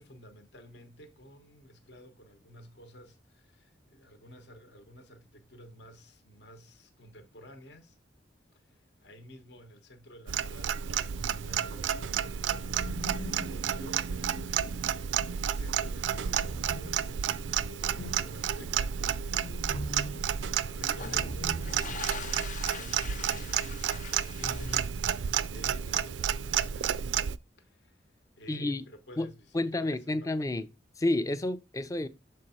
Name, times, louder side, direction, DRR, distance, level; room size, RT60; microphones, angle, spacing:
voice 1, 0.0-8.0 8.7-19.0 19.3-27.1 27.6-28.1 28.4-30.4, equal, 65° left, 1.0 m, -52 dB
Clock, 10.3-27.4, right 8 dB, 85° right, 0.4 m, -31 dB
sound 1, 11.1-11.9 12.6-15.4 16.0-22.3 22.5-22.6 24.4-24.8, right 1 dB, 85° left, 1.4 m, -43 dB
sound 2, 20.9-25.5, left 4 dB, 45° left, 0.7 m, -43 dB
voice 2, 28.5-28.8 29.2-29.3 29.5-30.7 31.0-32.1, left 2 dB, 20° left, 0.4 m, -30 dB
6.4 x 4.5 x 4.2 m
head